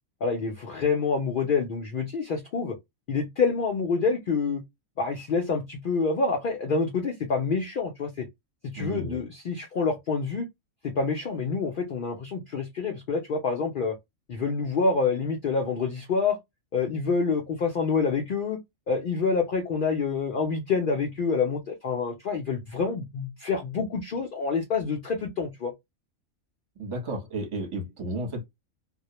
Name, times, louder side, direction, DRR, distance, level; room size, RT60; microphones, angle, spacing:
voice 1, 0.2-2.7 3.1-4.6 5.0-8.3 8.7-10.5 10.8-14.0 14.3-16.4 16.7-18.6 18.9-25.7, left 4 dB, 75° left, 0.5 m, -27 dB
voice 2, 8.8-9.2 26.8-28.4, right 1 dB, 25° right, 0.7 m, -33 dB
2.3 x 2.1 x 2.8 m
omnidirectional pair, 1.4 m